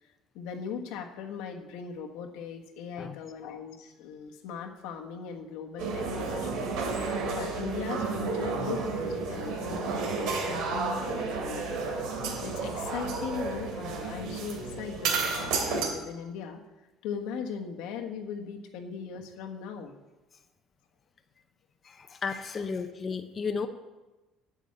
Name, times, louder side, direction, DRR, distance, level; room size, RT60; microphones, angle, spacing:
voice 1, 0.0-6.7 7.0-11.8 12.4-20.0, left 6 dB, 85° left, 3 dB, 1.3 m, -39 dB
sound 1, 5.8-15.9, right 4 dB, 85° right, 2.7 m, -31 dB
voice 2, 21.8-23.7, left 5 dB, 25° left, 7 dB, 0.7 m, -33 dB
9.0 x 7.2 x 8.7 m, 1.1 s
cardioid pair, 155°, 0 cm